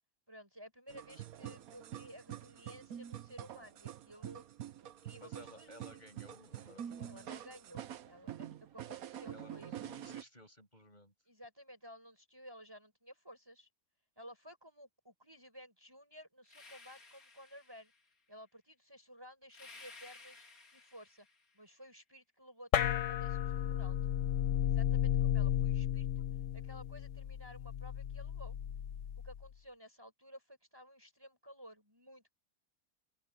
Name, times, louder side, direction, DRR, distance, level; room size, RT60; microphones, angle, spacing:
voice 1, 0.3-4.5 4.8-6.0 7.0-9.7 11.3-13.7 14.2-17.9 18.3-20.5 20.7-21.3 21.5-24.0 24.6-26.2 26.5-28.6 29.2-32.3, equal, 15° right, 5.6 m, -55 dB
sound 1, 0.9-10.2, right 10 dB, 85° right, 1.4 m, -46 dB
voice 2, 5.2-7.4 9.3-11.1, left 1 dB, 30° left, 7.2 m, -57 dB
sound 2, 16.5-18.1 19.5-21.6, left 3 dB, 90° left, 3.4 m, -56 dB
sound 3, 22.7-29.5, left 10 dB, 65° left, 1.1 m, -34 dB
open air
omnidirectional pair, 1.5 m